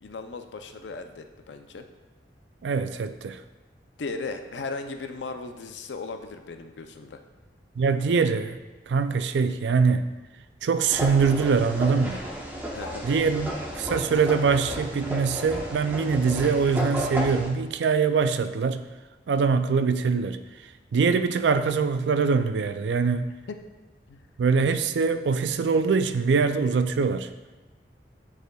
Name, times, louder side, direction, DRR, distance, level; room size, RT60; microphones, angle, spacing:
voice 1, 0.0-1.9 4.0-7.2 12.7-13.1 23.5-23.6 24.1-24.2, left 3 dB, 80° left, 7 dB, 0.5 m, -37 dB
voice 2, 2.6-3.4 7.8-8.6 8.9-10.1 10.6-12.2 13.0-18.8 19.3-20.4 20.9-23.3 24.4-27.3, right 5 dB, 80° right, 11 dB, 0.4 m, -23 dB
sound 1, 10.9-17.5, equal, 10° right, 0.8 m, -33 dB
9.0 x 4.8 x 2.3 m, 1.2 s
head